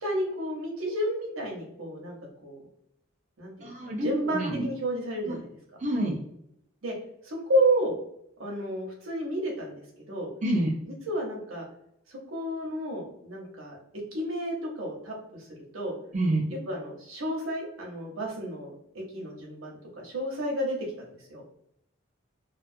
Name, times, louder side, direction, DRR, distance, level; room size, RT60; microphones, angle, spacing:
voice 1, 0.0-2.2 2.4-2.6 3.4-5.5 6.8-6.9 7.2-7.9 8.4-10.3 10.9-11.7 12.1-13.8 14.1-15.5 15.7-15.9 16.5-21.4, right 1 dB, 85° right, -1 dB, 0.8 m, -31 dB
voice 2, 3.6-4.7 5.8-6.2 10.4-10.7 16.1-16.5, right 1 dB, 35° right, -3 dB, 0.4 m, -27 dB
2.4 x 2.3 x 2.5 m, 0.76 s
head